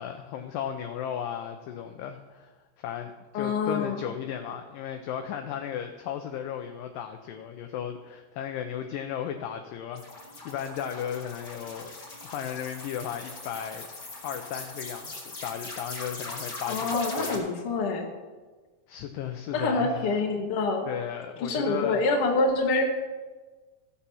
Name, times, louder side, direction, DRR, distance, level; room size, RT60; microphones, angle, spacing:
voice 1, 0.0-11.9 12.2-13.9 14.2-17.4 18.9-20.1 20.9-22.0, left 9 dB, 80° left, 6 dB, 2.0 m, -35 dB
voice 2, 3.3-4.0 16.7-18.1 19.5-20.9 21.4-22.8, left 3 dB, 50° left, 2 dB, 1.8 m, -26 dB
sound 1, 9.9-17.4, left 3 dB, 30° left, 2.7 m, -40 dB
15.5 x 7.0 x 5.6 m, 1.3 s
omnidirectional pair, 4.5 m